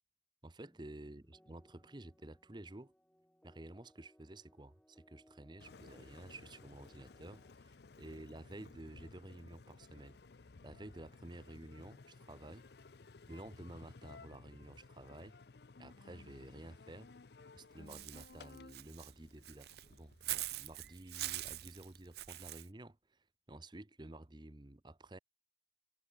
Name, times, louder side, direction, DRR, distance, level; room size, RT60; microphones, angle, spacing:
voice 1, 0.4-2.9 3.4-10.2 10.6-12.7 13.3-15.4 15.8-17.1 17.5-25.2, right 1 dB, 25° right, 0.9 m, -52 dB
sound 1, 0.6-7.5, equal, 5° left, 1.7 m, -68 dB
Engine, 5.6-20.6, left 3 dB, 65° left, 0.6 m, -57 dB
Walk footsteps / Bird, 17.9-22.7, right 16 dB, 65° right, 0.6 m, -43 dB
head